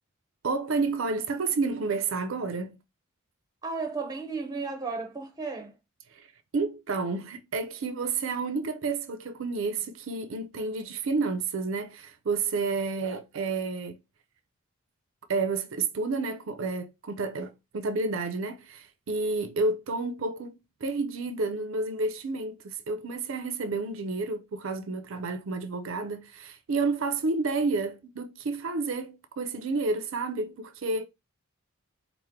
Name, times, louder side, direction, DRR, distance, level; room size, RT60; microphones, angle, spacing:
voice 1, 0.4-2.8 6.1-6.3 6.5-14.0 15.3-31.0, right 3 dB, 60° right, 0.5 m, -30 dB
voice 2, 3.6-5.7, right 4 dB, 15° right, 0.6 m, -34 dB
4.4 x 2.1 x 3.5 m
head